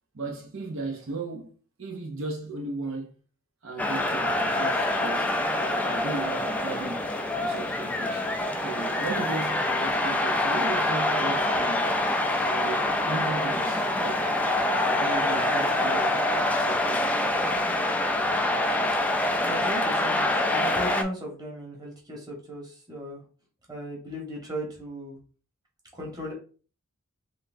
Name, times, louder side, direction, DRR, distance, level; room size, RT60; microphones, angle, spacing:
voice 1, 0.1-1.5 1.8-3.2 3.6-7.0 7.4-8.3 8.6-12.1 12.4-14.3 14.8-17.1, right 3 dB, 60° right, 0.7 m, -36 dB
sound 1, 3.8-21.0, left 1 dB, 5° left, 0.3 m, -25 dB
voice 2, 19.4-23.2 23.7-25.2 25.9-26.3, equal, 20° right, 1.4 m, -36 dB
4.2 x 3.3 x 2.6 m
head